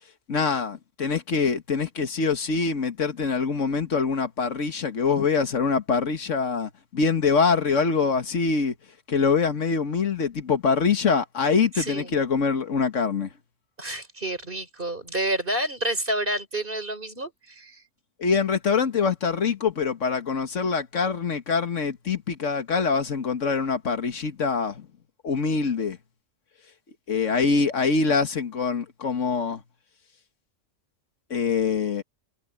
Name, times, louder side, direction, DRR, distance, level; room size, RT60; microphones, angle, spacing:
voice 1, 0.3-8.7 9.1-13.3 18.2-24.9 25.2-26.0 27.1-29.6 31.3-32.0, left 5 dB, 80° left, 1.9 m, -24 dB
voice 2, 11.7-12.1 13.8-17.8, right 1 dB, 45° right, 4.7 m, -29 dB
omnidirectional pair, 1.3 m